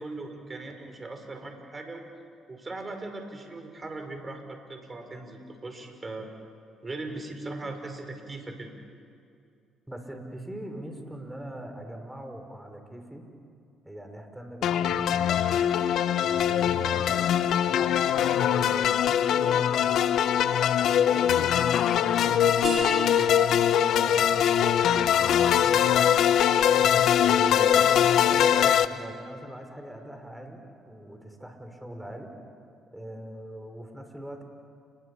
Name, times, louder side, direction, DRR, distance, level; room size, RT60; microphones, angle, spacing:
voice 1, 0.0-2.1 2.5-6.3 6.8-8.7, right 2 dB, 30° right, 5 dB, 5.6 m, -39 dB
voice 2, 9.9-13.3 13.8-15.7 16.1-17.9 18.3-20.3 20.8-21.6 21.8-26.2 26.8-32.3 32.9-34.4, right 1 dB, 5° right, 5 dB, 5.8 m, -41 dB
sound 1, 14.6-28.9, left 9 dB, 65° left, 1.0 m, -22 dB
sound 2, 22.6-28.0, right 3 dB, 45° right, 6.4 m, -40 dB
29.5 x 22.0 x 8.7 m, 2.4 s
hypercardioid pair, 55°, 0 cm